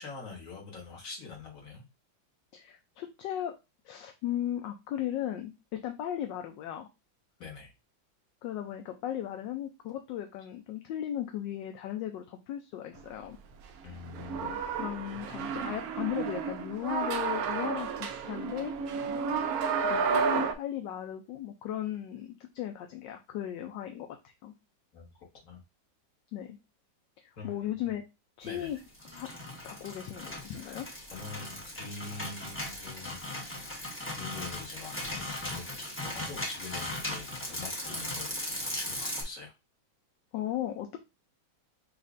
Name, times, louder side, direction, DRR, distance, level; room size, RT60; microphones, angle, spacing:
voice 1, 0.0-1.8 7.4-7.7 13.8-14.5 24.9-25.1 25.4-25.6 27.4-27.8 28.4-28.7 30.5-30.7 31.1-33.2 34.1-39.5, left 4 dB, 45° left, 0 dB, 1.7 m, -45 dB
voice 2, 2.5-3.5 3.8-6.9 8.4-13.4 14.3-18.7 19.8-24.5 26.3-26.6 27.2-28.0 28.4-28.8 29.1-29.3 29.6-30.9 40.3-41.0, left 11 dB, 75° left, 5 dB, 1.2 m, -36 dB
sound 1, 14.0-20.5, right 6 dB, 70° right, 0.9 m, -31 dB
sound 2, 28.8-39.2, left 1 dB, 15° left, 0.5 m, -38 dB
6.3 x 2.5 x 2.5 m, 0.25 s
omnidirectional pair, 2.1 m